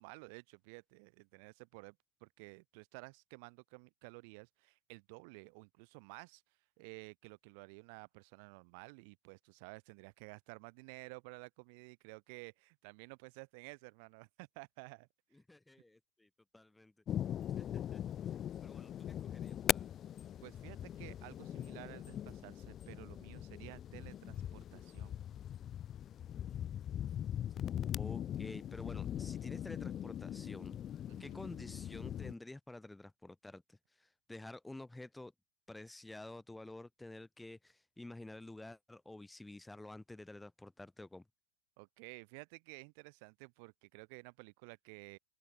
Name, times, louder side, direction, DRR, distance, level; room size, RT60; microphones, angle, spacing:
voice 1, 0.0-6.4 6.8-15.1 20.4-25.2 31.1-31.4 41.8-45.2, right 33 dB, 45° right, 1.2 m, -53 dB
voice 2, 15.3-16.9 17.2-17.3 17.6-19.9 28.0-30.8 31.2-35.3 35.7-41.2, left 2 dB, 5° left, 0.9 m, -51 dB
sound 1, 17.1-32.3, left 10 dB, 30° left, 0.5 m, -41 dB
open air
figure-of-eight pair, 90°, 0 cm